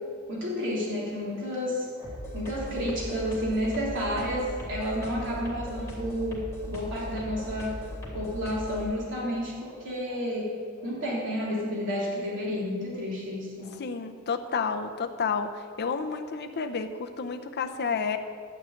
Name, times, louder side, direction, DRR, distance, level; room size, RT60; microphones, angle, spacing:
voice 1, 0.3-7.8 8.1-13.8, equal, 55° right, -5 dB, 3.5 m, -31 dB
sound 1, 2.0-8.8, equal, 15° left, 3.0 m, -38 dB
voice 2, 13.8-18.2, left 5 dB, 50° left, 6 dB, 0.6 m, -30 dB
11.5 x 5.1 x 8.7 m, 2.1 s
head